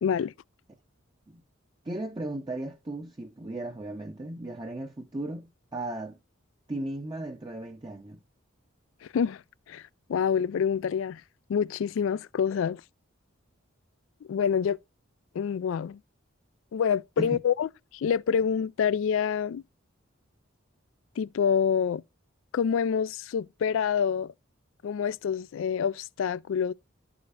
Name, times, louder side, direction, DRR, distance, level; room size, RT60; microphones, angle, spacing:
voice 1, 0.0-0.3 9.1-9.4 9.7-9.8 10.1-11.2 11.5-12.8 14.3-14.8 15.3-16.0 16.7-19.6 21.2-22.0 22.5-24.3 24.8-26.7, left 7 dB, 70° left, 0.3 m, -27 dB
voice 2, 1.8-6.2 6.7-8.2 17.2-17.4, right 1 dB, 20° right, 0.6 m, -36 dB
12.5 x 4.9 x 2.5 m
head